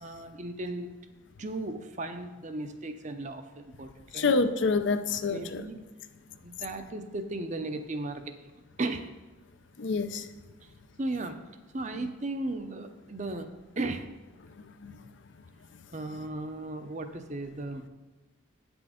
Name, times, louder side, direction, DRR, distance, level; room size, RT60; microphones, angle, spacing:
voice 1, 0.0-0.9 1.4-4.3 5.3-5.8 6.4-8.5 8.8-9.0 11.0-11.4 11.7-13.5 13.8-14.1 15.9-17.9, right 2 dB, 35° right, 8 dB, 0.6 m, -36 dB
voice 2, 4.1-5.6 9.8-10.3 14.8-14.9, left 4 dB, 65° left, 10 dB, 0.5 m, -27 dB
8.7 x 6.2 x 5.0 m, 1.2 s
head